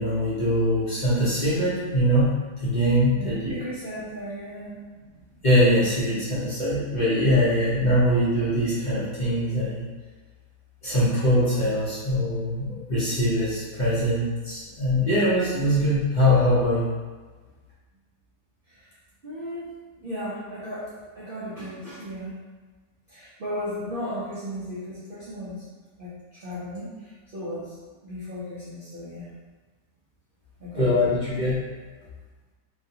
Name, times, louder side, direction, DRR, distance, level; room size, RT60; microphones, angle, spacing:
voice 1, 0.0-2.3 2.6-3.6 5.4-9.8 10.8-16.9 30.7-31.6, equal, 35° left, -12 dB, 0.9 m, -22 dB
voice 2, 3.1-4.8 18.7-18.9 19.2-19.7 20.0-22.3 23.1-25.6 26.0-27.7 28.0-29.3 30.6-31.2, equal, 70° right, -9 dB, 0.5 m, -35 dB
3.0 x 2.4 x 2.7 m, 1.3 s
omnidirectional pair, 1.8 m